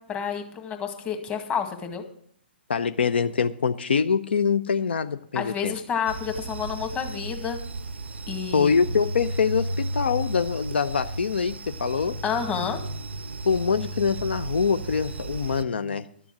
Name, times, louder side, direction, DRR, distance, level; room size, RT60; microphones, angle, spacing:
voice 1, 0.1-2.0 5.3-7.6 8.3-8.9 12.2-12.8, left 7 dB, 20° left, 5 dB, 1.8 m, -29 dB
voice 2, 2.7-5.8 8.5-12.2 13.4-16.0, left 6 dB, 75° left, 12 dB, 0.6 m, -24 dB
sound 1, 6.1-15.6, right 2 dB, 85° right, 0.5 m, -34 dB
12.0 x 7.0 x 7.4 m, 0.65 s
hypercardioid pair, 125°, 6 cm